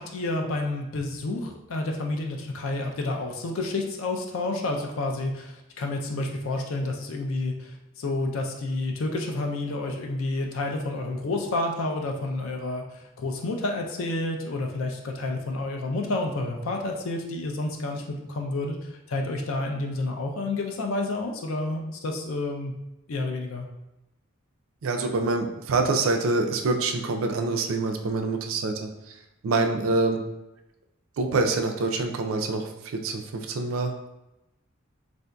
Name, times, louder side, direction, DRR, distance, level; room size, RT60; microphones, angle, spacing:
voice 1, 0.0-22.7 23.1-23.7, left 2 dB, 70° left, 2 dB, 0.4 m, -30 dB
voice 2, 24.8-28.9 29.4-30.2 31.2-33.9, right 3 dB, 75° right, 4 dB, 0.4 m, -26 dB
3.6 x 2.6 x 2.2 m, 0.96 s
head